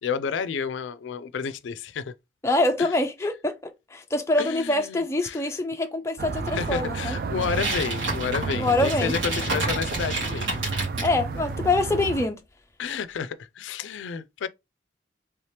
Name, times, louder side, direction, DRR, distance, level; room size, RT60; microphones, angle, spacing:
voice 1, 0.0-2.1 2.8-2.9 4.4-5.4 6.5-10.8 12.8-14.5, left 6 dB, 85° left, 0.3 m, -31 dB
voice 2, 2.4-7.2 8.5-9.1 11.0-12.4, left 2 dB, 15° left, 0.4 m, -25 dB
sound 1, 6.2-12.3, right 4 dB, 50° right, 0.3 m, -31 dB
sound 2, 7.4-11.1, right 2 dB, 90° right, 1.8 m, -30 dB
3.4 x 2.8 x 3.2 m
head